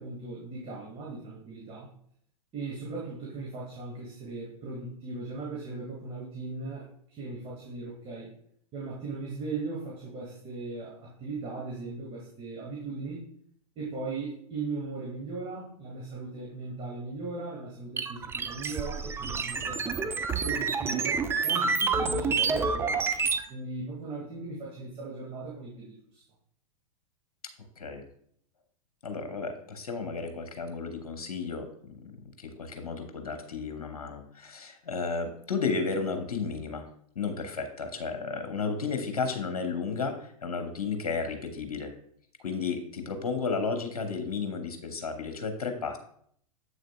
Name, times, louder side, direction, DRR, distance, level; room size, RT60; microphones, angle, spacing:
voice 1, 0.0-1.9 2.5-8.3 8.7-13.3 13.8-23.1 23.5-26.2, right 3 dB, 30° right, -4 dB, 1.9 m, -38 dB
sound 1, 18.0-23.4, right 5 dB, 10° right, 0.4 m, -28 dB
voice 2, 29.0-31.7 32.4-36.8 37.1-41.9 42.4-46.0, left 4 dB, 75° left, 6 dB, 1.0 m, -33 dB
7.6 x 6.4 x 2.3 m, 0.66 s
figure-of-eight pair, 100°, 19 cm